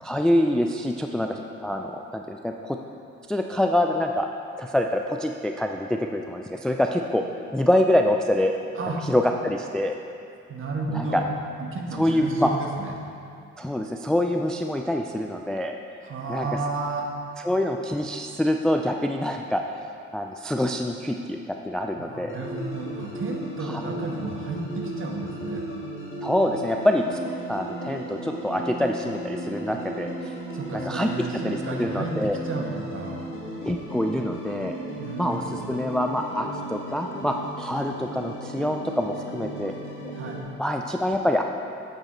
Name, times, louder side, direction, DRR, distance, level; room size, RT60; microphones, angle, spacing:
voice 1, 0.0-2.8 3.3-4.3 4.6-7.2 7.5-8.5 9.0-10.0 10.9-11.2 12.0-12.5 13.6-15.8 16.3-16.5 17.4-19.8 20.1-22.4 23.7-23.8 26.2-27.2 27.5-30.1 30.9-32.4 33.7-34.8 35.2-39.7 40.6-41.4, left 1 dB, ahead, 3 dB, 0.3 m, -25 dB
voice 2, 10.5-11.3 11.7-12.9 16.0-17.1 22.0-25.6 30.5-33.2 35.0-35.6 40.2-40.5, right 3 dB, 45° right, 0 dB, 1.3 m, -32 dB
sound 1, 22.3-40.4, right 1 dB, 40° left, 1.6 m, -36 dB
8.2 x 7.3 x 3.9 m, 2.6 s
cardioid pair, 90°, 30 cm